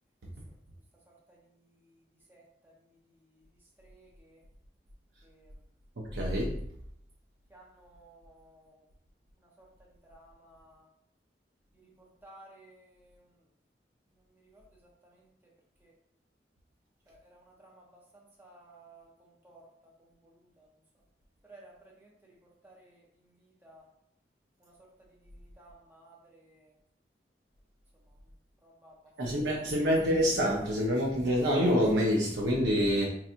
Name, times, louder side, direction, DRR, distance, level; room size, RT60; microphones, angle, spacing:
voice 1, 2.3-2.7 3.8-4.4 5.2-5.5 7.5-8.8 10.1-10.8 12.2-13.2 14.5-14.6 15.8-15.9 17.1-17.7 18.4-19.1 19.4-19.6 20.2-20.6 21.5-22.1 22.6-23.0 23.6-23.8 25.6-26.7 28.6-28.9, right 2 dB, 10° right, -3 dB, 0.7 m, -56 dB
voice 2, 6.1-6.5 29.2-33.1, equal, 80° right, -3 dB, 0.6 m, -26 dB
4.6 x 2.7 x 2.5 m, 0.71 s
head